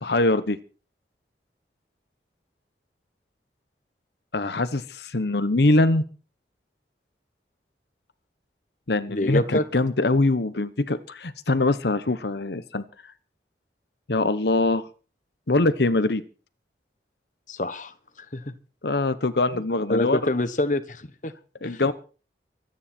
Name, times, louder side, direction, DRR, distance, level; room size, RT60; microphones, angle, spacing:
voice 1, 0.0-0.6 4.3-6.0 8.9-12.8 14.1-14.9 15.5-16.2 18.8-20.3 21.6-21.9, left 2 dB, 70° left, 12 dB, 1.0 m, -23 dB
voice 2, 9.1-9.6 17.5-17.9 18.3-18.5 19.9-21.3 21.6-21.9, left 1 dB, 45° left, 12 dB, 1.1 m, -26 dB
24.0 x 9.6 x 4.4 m, 0.37 s
head